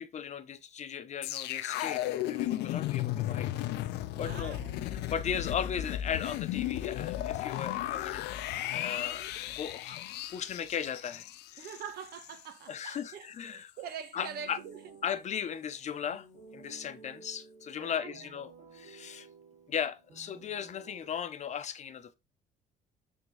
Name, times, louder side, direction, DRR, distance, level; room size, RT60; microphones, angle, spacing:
voice 1, 0.0-3.5 4.2-4.6 4.9-8.2 8.7-10.0 10.3-11.3 11.5-11.7 12.7-13.7 14.1-14.6 15.0-16.3 16.5-19.3 19.7-22.1, left 8 dB, 45° left, 0.8 m, -37 dB
sound 1, 1.2-12.4 12.7-12.9, left 13 dB, 85° left, 0.6 m, -35 dB
voice 2, 4.1-4.9 11.6-14.8 17.8-18.3, right 7 dB, 65° right, 1.2 m, -44 dB
sound 2, 14.1-21.1, right 5 dB, 35° right, 3.3 m, -54 dB
8.2 x 3.7 x 3.3 m
cardioid pair, 110°, 17 cm